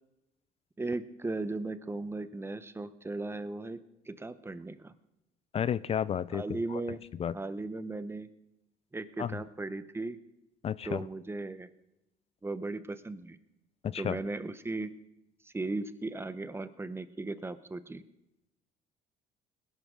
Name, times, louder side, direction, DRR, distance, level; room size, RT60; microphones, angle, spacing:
voice 1, 0.8-3.8 4.1-4.9 6.3-7.0 7.3-8.3 8.9-10.2 10.8-11.7 12.4-13.4 14.0-14.9 15.4-18.0, right 2 dB, 15° right, 13 dB, 0.8 m, -37 dB
voice 2, 5.5-6.8 7.2-7.3 9.2-9.3 10.6-11.0 13.8-14.2, left 8 dB, 35° left, 19 dB, 0.4 m, -32 dB
20.5 x 11.0 x 3.8 m, 0.90 s
cardioid pair, 110°, 17 cm